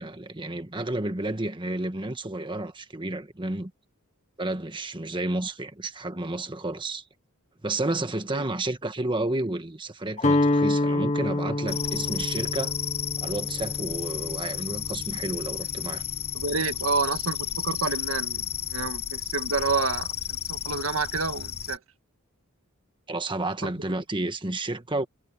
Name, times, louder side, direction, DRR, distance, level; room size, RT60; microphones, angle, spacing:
voice 1, 0.0-3.7 4.4-7.0 7.6-12.7 13.2-16.0 23.1-25.1, right 2 dB, 25° right, 1.5 m, -31 dB
Guitar, 10.2-16.2, left 2 dB, 35° left, 1.2 m, -28 dB
sound 1, 11.7-21.8, left 10 dB, 50° left, 7.9 m, -32 dB
voice 2, 16.3-21.8 23.6-23.9 25.0-25.1, right 4 dB, 65° right, 1.8 m, -29 dB
head